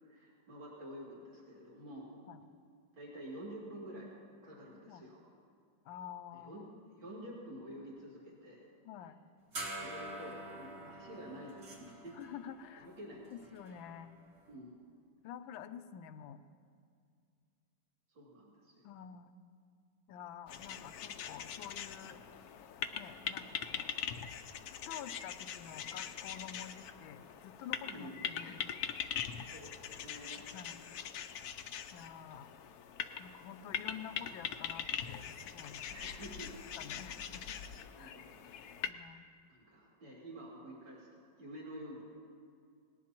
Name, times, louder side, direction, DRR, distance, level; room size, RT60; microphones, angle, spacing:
voice 1, 0.1-2.1 2.9-4.1 4.4-5.2 6.3-6.6 7.0-8.7 9.7-12.2 12.8-13.3 14.5-14.8 18.1-18.7 27.9-28.2 29.5-30.4 35.9-36.5 38.0-38.7 39.5-42.0, right 1 dB, 80° right, -5 dB, 3.5 m, -49 dB
voice 2, 5.8-6.7 8.8-9.2 10.7-10.9 12.1-12.9 13.3-14.1 15.2-16.4 18.8-19.3 20.1-22.2 22.9-23.9 24.9-28.6 29.3-29.5 30.4-30.8 31.9-32.5 33.2-35.8 36.8-37.6 38.0-38.1 38.8-39.3, left 9 dB, 85° left, 10 dB, 1.4 m, -49 dB
sound 1, 9.5-14.4, right 2 dB, 65° right, 2.8 m, -47 dB
sound 2, 20.5-38.9, left 8 dB, 70° left, 0.9 m, -42 dB
19.0 x 18.5 x 3.0 m, 2.2 s
omnidirectional pair, 2.1 m